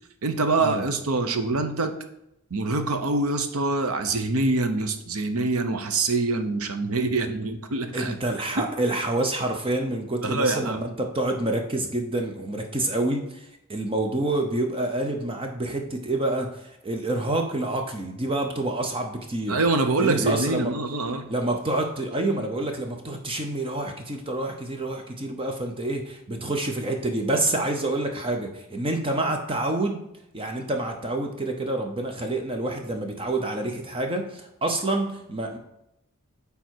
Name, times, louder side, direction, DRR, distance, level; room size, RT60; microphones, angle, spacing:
voice 1, 0.2-1.9 2.5-8.1 8.6-8.7 10.2-10.8 19.5-21.3, right 3 dB, 90° right, 8 dB, 0.8 m, -25 dB
voice 2, 7.9-13.4 13.7-19.6 20.0-20.7 21.3-30.0 30.3-35.6, right 2 dB, 25° right, 4 dB, 0.7 m, -27 dB
9.2 x 3.5 x 4.5 m, 0.83 s
head